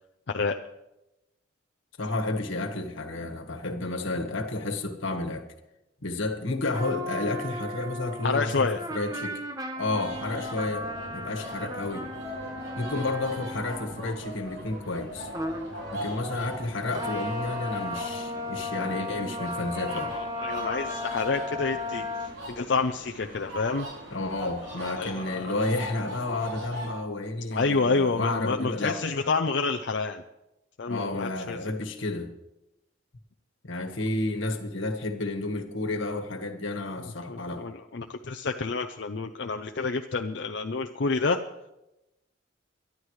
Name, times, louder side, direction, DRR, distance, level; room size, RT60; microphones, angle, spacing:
voice 1, 2.0-5.5 6.0-9.4 9.7-12.1 12.8-15.3 15.9-20.1 24.1-29.0 30.9-32.3 33.6-37.7, left 2 dB, 80° left, 1.5 m, -31 dB
sound 1, 6.7-14.2 15.3-15.7 16.9-22.3, left 1 dB, 20° right, 1.0 m, -35 dB
voice 2, 8.2-8.8 19.9-23.9 25.0-25.5 27.5-30.2 30.8-31.6 37.3-41.4, left 4 dB, 60° left, 0.6 m, -28 dB
sound 2, 9.9-26.9, equal, 85° right, 6.9 m, -40 dB
23.0 x 12.0 x 3.2 m
head